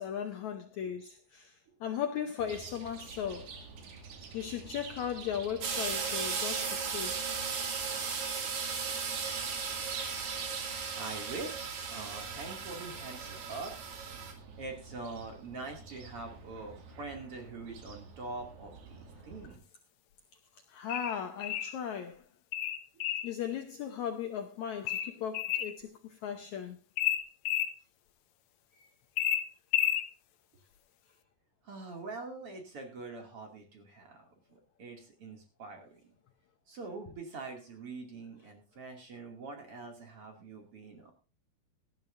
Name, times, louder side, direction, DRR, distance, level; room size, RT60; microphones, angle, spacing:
voice 1, 0.0-3.6 4.3-7.2 20.7-22.3 23.2-26.8 28.8-28.9, left 8 dB, 70° left, 1.8 m, -37 dB
Chirp tweet, 2.4-19.5, right 5 dB, 85° right, 4.2 m, -48 dB
sound 1, 5.6-14.3, right 5 dB, 65° right, 4.1 m, -36 dB
voice 2, 11.0-11.6 11.9-13.8 14.5-19.6 31.6-36.1 36.7-41.1, right 3 dB, 40° right, 3.1 m, -44 dB
sound 2, 20.9-21.7 22.5-23.3 24.9-25.7 27.0-27.7 29.2-30.1, left 11 dB, 85° left, 2.8 m, -31 dB
18.0 x 12.5 x 2.6 m
omnidirectional pair, 4.3 m